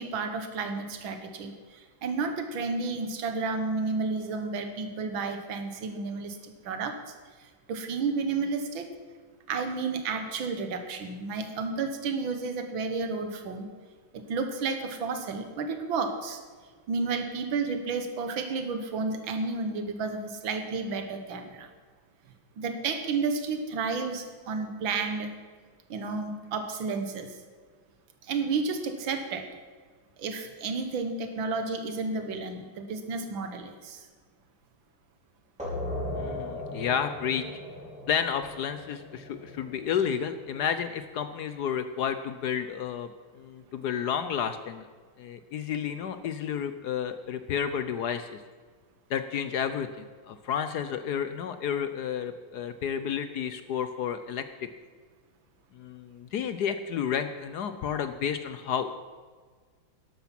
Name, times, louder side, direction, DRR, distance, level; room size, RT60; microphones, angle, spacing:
voice 1, 0.0-7.1 7.4-8.9 9.5-13.7 14.1-16.4 16.9-21.7 22.6-25.3 25.9-27.3 28.2-29.5 30.2-34.0, right 4 dB, 70° right, 7 dB, 2.1 m, -31 dB
sound 1, 35.6-40.9, left 1 dB, 5° right, 5.1 m, -38 dB
voice 2, 36.2-37.4 38.1-44.8 45.2-48.4 49.1-54.7 55.7-58.9, left 8 dB, 70° left, 10 dB, 1.0 m, -31 dB
13.0 x 12.0 x 5.9 m, 1.5 s
omnidirectional pair, 2.3 m